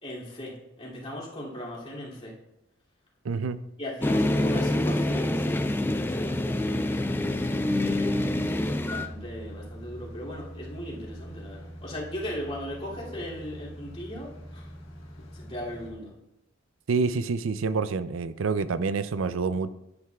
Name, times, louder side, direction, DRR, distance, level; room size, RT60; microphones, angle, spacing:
voice 1, 0.0-2.3 3.8-6.4 7.7-8.5 8.8-14.7 15.3-16.1, equal, 30° left, -6 dB, 2.6 m, -38 dB
voice 2, 3.2-3.6 16.9-19.7, right 4 dB, 80° right, 14 dB, 0.5 m, -27 dB
sound 1, 4.0-9.1, left 1 dB, 10° left, 0.3 m, -26 dB
sound 2, 4.8-15.9, equal, 75° left, 1.5 m, -43 dB
11.5 x 9.2 x 2.3 m, 0.88 s
head